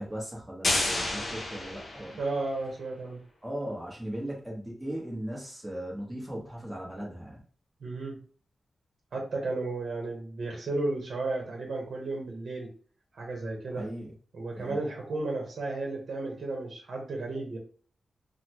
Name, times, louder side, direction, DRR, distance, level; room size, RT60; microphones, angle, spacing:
voice 1, 0.0-2.2 3.4-7.4 13.7-14.1 14.6-14.8, right 1 dB, 10° right, -3 dB, 1.1 m, -38 dB
sound 1, 0.6-2.5, left 2 dB, 40° left, 0.7 m, -30 dB
voice 2, 2.2-3.2 7.8-8.2 9.1-12.7 13.1-13.9 14.3-17.6, right 2 dB, 55° right, 0 dB, 1.0 m, -33 dB
3.8 x 2.1 x 3.0 m, 0.44 s
wide cardioid pair, 175°, 0 cm